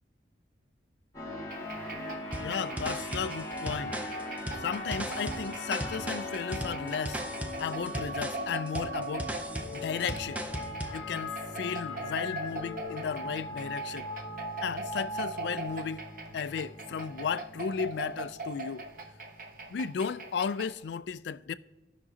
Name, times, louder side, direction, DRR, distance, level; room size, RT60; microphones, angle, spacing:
sound 1, 1.1-20.6, left 1 dB, 20° left, 1.2 m, -40 dB
sound 2, 1.5-20.8, right 2 dB, 45° right, 1.0 m, -42 dB
sound 3, 2.3-11.0, right 1 dB, 10° right, 0.5 m, -38 dB
voice 1, 2.4-4.0 4.5-7.2 7.6-9.3 9.7-10.5 10.9-14.1 14.6-16.0 16.3-18.9 19.7-21.5, left 6 dB, 65° left, 0.3 m, -34 dB
17.0 x 5.9 x 2.8 m
head